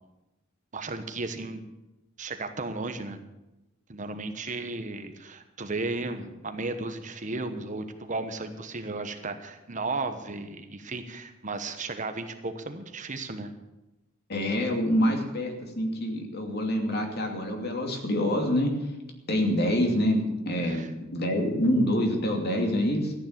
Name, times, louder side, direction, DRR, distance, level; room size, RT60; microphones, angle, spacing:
voice 1, 0.7-1.6 2.2-3.2 3.9-13.5 20.6-20.9, right 3 dB, 40° right, 8 dB, 1.1 m, -34 dB
voice 2, 14.3-18.7 19.3-23.1, equal, 55° left, 2 dB, 2.6 m, -26 dB
14.0 x 9.5 x 7.5 m, 0.98 s
head